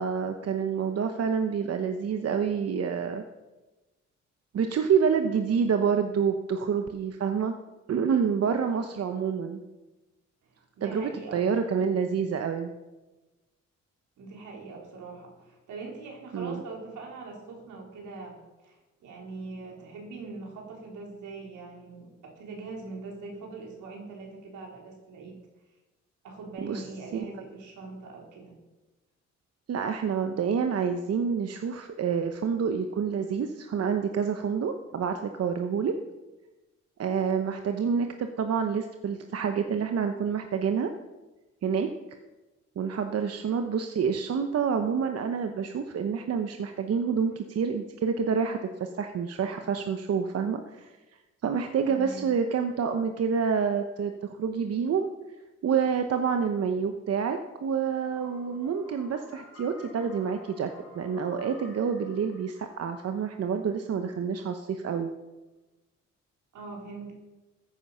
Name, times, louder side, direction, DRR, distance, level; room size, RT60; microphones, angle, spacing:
voice 1, 0.0-3.2 4.5-7.6 7.9-9.6 10.8-12.7 16.3-16.6 26.6-26.8 27.1-27.2 29.7-35.9 37.0-40.9 41.6-41.9 42.8-51.0 51.4-55.1 55.6-60.7 60.9-65.1, right 6 dB, 55° right, 6 dB, 1.0 m, -28 dB
voice 2, 8.7-9.1 10.4-11.6 14.2-25.4 26.2-28.5 51.8-52.3 66.5-67.1, right 3 dB, 80° right, -1 dB, 4.1 m, -42 dB
sound 1, 57.9-63.8, left 2 dB, 55° left, 2.9 m, -52 dB
14.5 x 9.4 x 5.7 m, 1.1 s
cardioid pair, 90°, 30 cm